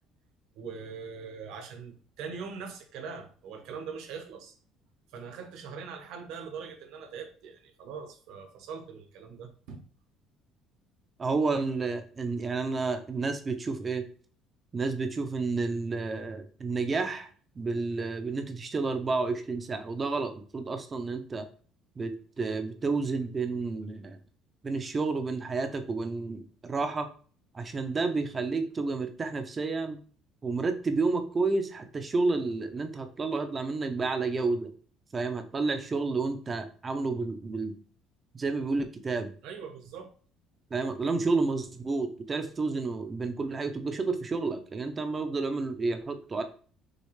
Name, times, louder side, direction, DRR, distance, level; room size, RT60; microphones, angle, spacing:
voice 1, 0.6-4.5 5.1-9.8 39.4-40.1, right 6 dB, 65° right, 4 dB, 1.0 m, -42 dB
voice 2, 11.2-14.0 14.7-17.3 17.6-21.5 22.0-24.2 24.6-27.1 27.5-30.0 30.4-34.7 35.1-37.8 38.3-39.3 40.7-46.4, right 3 dB, 20° right, 7 dB, 0.5 m, -30 dB
6.4 x 2.4 x 3.1 m, 0.43 s
cardioid pair, 175°, 0 cm